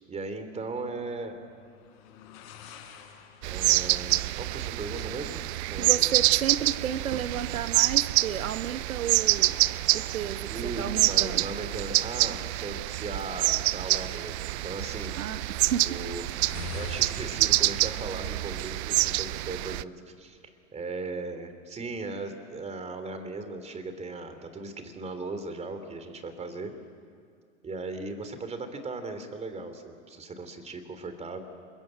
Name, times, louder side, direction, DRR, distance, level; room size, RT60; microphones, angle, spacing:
voice 1, 0.1-1.4 3.4-5.4 5.7-6.1 10.5-15.1 15.8-16.2 16.7-20.4 20.7-26.7 27.6-31.4, right 3 dB, 15° right, 8 dB, 3.0 m, -37 dB
sound 1, 0.7-20.4, left 7 dB, 45° left, 5.7 m, -50 dB
sound 2, 3.4-19.8, right 18 dB, 55° right, 0.6 m, -27 dB
voice 2, 5.8-9.6 9.9-11.5 15.2-15.9, right 9 dB, 85° right, 11 dB, 1.2 m, -32 dB
28.0 x 22.0 x 8.9 m, 2.2 s
hypercardioid pair, 115°, 40 cm